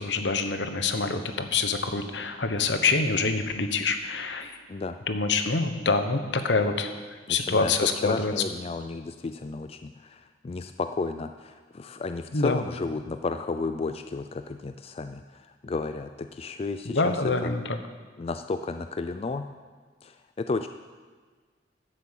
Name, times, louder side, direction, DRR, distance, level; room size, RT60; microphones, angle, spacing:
voice 1, 0.0-4.6 5.1-6.9 7.3-8.3 12.3-12.6 16.8-17.8, left 4 dB, 75° left, 8 dB, 1.1 m, -26 dB
voice 2, 7.3-7.7 8.0-17.1 17.4-17.5 18.2-19.5 20.0-20.7, left 3 dB, 35° left, 8 dB, 0.4 m, -33 dB
12.0 x 7.8 x 7.4 m, 1.5 s
head